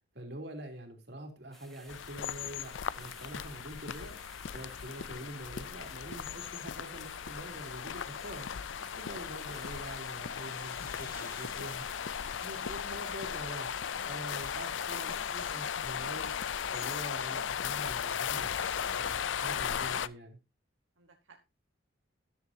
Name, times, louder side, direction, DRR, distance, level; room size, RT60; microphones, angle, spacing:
voice 1, 0.1-8.5 8.9-11.9 12.4-13.7 14.1-16.5 16.7-20.4, right 1 dB, 55° right, 3 dB, 3.1 m, -45 dB
sound 1, 1.5-16.6, equal, ahead, 1.6 m, -57 dB
sound 2, 1.9-20.1, left 8 dB, 75° left, 0.5 m, -37 dB
sound 3, 8.5-13.9, left 3 dB, 25° left, 3.8 m, -57 dB
voice 2, 11.1-11.5 21.0-21.4, right 4 dB, 85° right, 4 dB, 1.3 m, -55 dB
13.5 x 11.0 x 2.8 m, 0.26 s
head